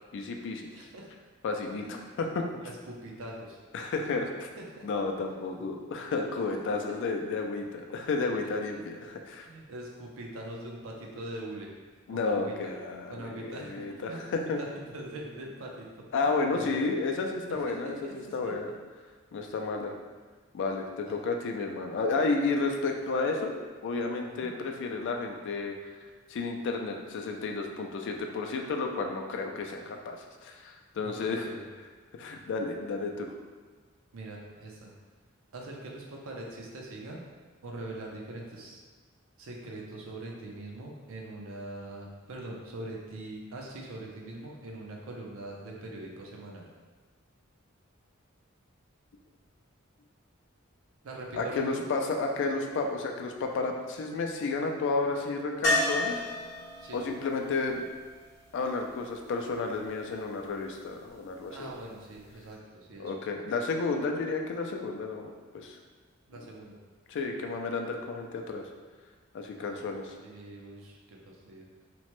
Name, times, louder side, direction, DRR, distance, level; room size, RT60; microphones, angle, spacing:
voice 1, 0.1-0.7 1.4-2.5 3.7-4.5 4.8-9.5 12.1-14.6 16.1-18.7 19.3-19.9 20.5-25.8 26.3-31.5 32.2-33.3 51.3-56.2 56.9-57.8 58.5-61.7 63.0-65.8 67.1-68.6 69.3-70.1, left 3 dB, 60° left, 3 dB, 0.3 m, -32 dB
voice 2, 0.7-1.1 1.8-1.9 2.6-3.6 4.6-4.9 9.3-11.7 12.1-12.7 13.1-16.9 17.5-18.5 21.0-21.2 24.4-24.5 31.0-31.7 34.1-34.9 35.5-37.2 37.6-38.8 39.4-46.6 51.0-51.9 56.8-57.0 61.5-63.1 66.3-66.8 69.5-69.8 70.2-71.7, right 1 dB, 70° right, -1 dB, 0.5 m, -42 dB
sound 1, 55.6-59.5 62.2-62.3 62.5-62.6, left 1 dB, 35° left, 1.0 m, -32 dB
2.9 x 2.1 x 3.0 m, 1.4 s
head